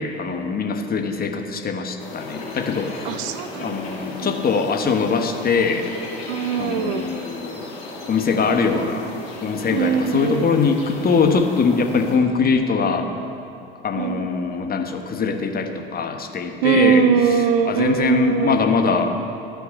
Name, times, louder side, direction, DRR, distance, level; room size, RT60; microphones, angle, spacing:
voice 1, 0.0-3.2 3.6-5.9 6.6-7.7 8.1-9.1 9.4-13.1 13.8-17.0 17.6-19.1, left 5 dB, 30° left, 5 dB, 1.2 m, -22 dB
sound 1, 2.0-12.2, left 2 dB, 80° left, 2.7 m, -36 dB
voice 2, 3.0-3.8 4.2-4.4 6.3-7.1 9.7-10.6 14.0-14.3 16.6-18.6, right 7 dB, 65° right, 11 dB, 0.8 m, -21 dB
12.5 x 5.9 x 7.5 m, 2.7 s
hypercardioid pair, 70°, 30 cm